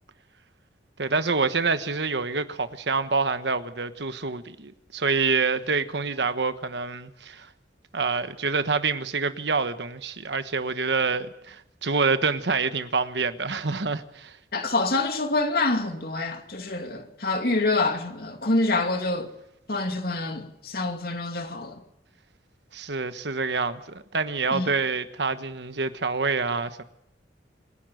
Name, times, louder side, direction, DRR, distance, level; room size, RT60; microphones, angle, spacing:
voice 1, 1.0-7.5 7.9-14.4 22.7-26.8, right 4 dB, 70° right, 1.2 m, -27 dB
voice 2, 14.5-19.3 19.7-21.8 24.5-24.7, left 2 dB, 55° left, 2.7 m, -26 dB
27.0 x 11.5 x 9.3 m
head